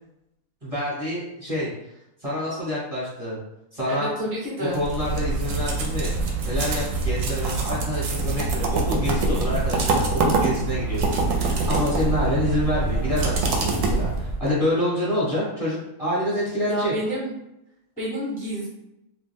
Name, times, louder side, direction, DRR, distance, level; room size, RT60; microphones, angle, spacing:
voice 1, 0.6-1.7 2.2-3.4 3.7-4.1 4.7-6.1 6.4-16.9, equal, 30° right, -8 dB, 0.9 m, -27 dB
voice 2, 3.9-4.8 16.7-17.3 18.0-18.7, equal, 10° left, -5 dB, 0.5 m, -29 dB
sound 1, 4.7-14.5, right 3 dB, 70° right, 0.9 m, -24 dB
2.5 x 2.2 x 3.4 m, 0.85 s
omnidirectional pair, 1.6 m